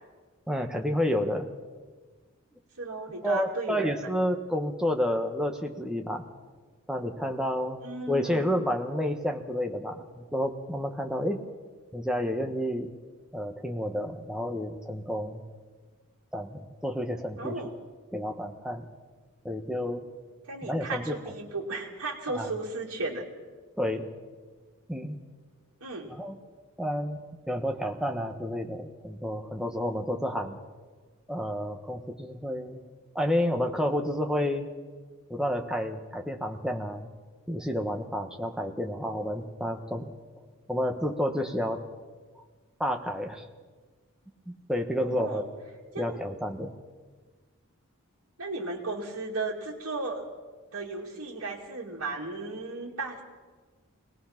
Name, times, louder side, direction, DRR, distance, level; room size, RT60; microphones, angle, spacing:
voice 1, 0.5-1.5 3.2-6.3 6.9-7.8 8.1-11.4 11.9-12.9 13.3-15.4 16.3-17.6 18.1-18.8 19.4-20.1 20.6-21.1 22.3-22.5 23.8-24.1 24.9-25.2 26.1-26.4 26.8-27.2 27.5-30.6 31.3-32.8 33.1-34.7 35.3-37.1 37.5-40.1 40.7-41.8 42.8-43.5 44.5-45.4 46.0-46.7, equal, 5° right, 3 dB, 1.2 m, -30 dB
voice 2, 2.8-4.1 7.8-8.4 17.4-17.7 20.5-23.2 25.8-26.1 45.0-45.4 45.9-46.2 48.4-50.3 50.7-53.2, right 3 dB, 75° right, -4 dB, 2.5 m, -35 dB
23.0 x 19.0 x 5.9 m, 1.4 s
head